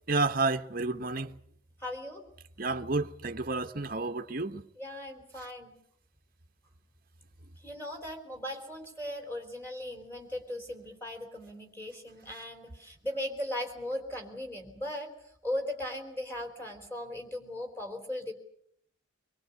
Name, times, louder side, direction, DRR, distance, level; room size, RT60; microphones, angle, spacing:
voice 1, 0.1-1.4 2.6-4.6, right 3 dB, 45° right, 1.0 m, -30 dB
voice 2, 1.8-2.2 4.8-5.7 7.6-15.1 15.4-18.3, left 1 dB, 10° left, 3.5 m, -38 dB
24.5 x 22.5 x 8.3 m
head